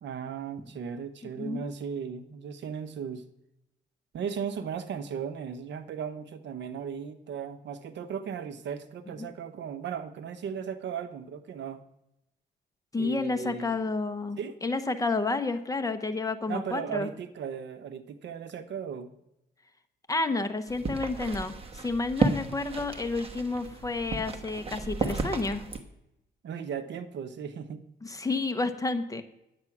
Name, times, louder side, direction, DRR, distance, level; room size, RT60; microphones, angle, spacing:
voice 1, 0.0-3.2 4.1-11.8 13.0-13.8 14.4-14.6 16.5-19.1 26.4-27.8, right 7 dB, 65° right, 10 dB, 0.9 m, -36 dB
voice 2, 12.9-17.1 20.1-25.7 28.0-29.2, left 3 dB, 15° left, 8 dB, 0.9 m, -30 dB
sound 1, 20.7-25.8, right 3 dB, 30° right, 1.2 m, -32 dB
10.5 x 8.5 x 5.9 m, 0.84 s
cardioid pair, 120°, 20 cm